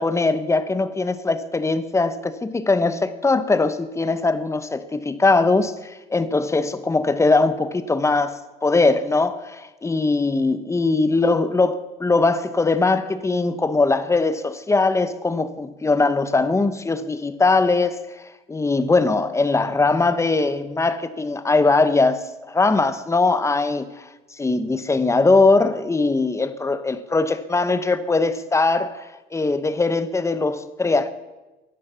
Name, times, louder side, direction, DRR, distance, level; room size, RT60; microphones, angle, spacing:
voice 1, 0.0-11.7 12.0-18.2 18.5-24.0 24.4-31.1, left 3 dB, 15° left, 1.0 m, -21 dB
15.5 x 10.5 x 6.9 m
cardioid pair, 110°, 17 cm